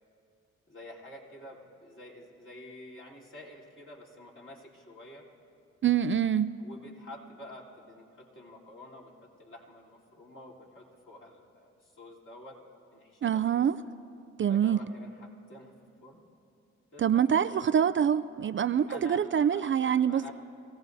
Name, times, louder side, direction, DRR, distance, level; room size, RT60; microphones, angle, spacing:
voice 1, 0.7-5.3 6.6-12.6 12.9-13.7 14.5-15.7 16.0-16.2 16.9-17.7 18.9-19.7 20.0-20.3, left 1 dB, 40° left, -4 dB, 3.5 m, -49 dB
voice 2, 5.8-6.5 13.2-13.8 14.4-14.8 17.0-20.3, right 8 dB, 45° right, 12 dB, 0.4 m, -25 dB
25.5 x 17.0 x 2.7 m, 2.6 s
cardioid pair, 60°, 29 cm